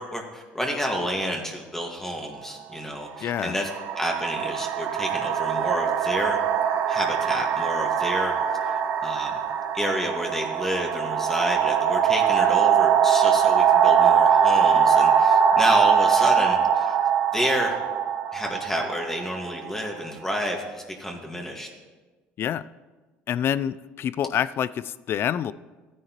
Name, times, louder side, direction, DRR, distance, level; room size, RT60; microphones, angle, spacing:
voice 1, 0.0-3.7 4.0-6.4 6.9-8.3 8.6-9.3 9.7-17.0 17.3-17.8 18.3-21.7, equal, 10° left, 1 dB, 1.8 m, -30 dB
sound 1, 2.2-2.4 3.3-20.0, right 7 dB, 65° right, 0.8 m, -22 dB
voice 2, 3.2-3.5 22.4-22.6 23.3-25.5, left 9 dB, 50° left, 17 dB, 0.4 m, -27 dB
14.0 x 9.8 x 3.0 m, 1.3 s
supercardioid pair, 80°, 5 cm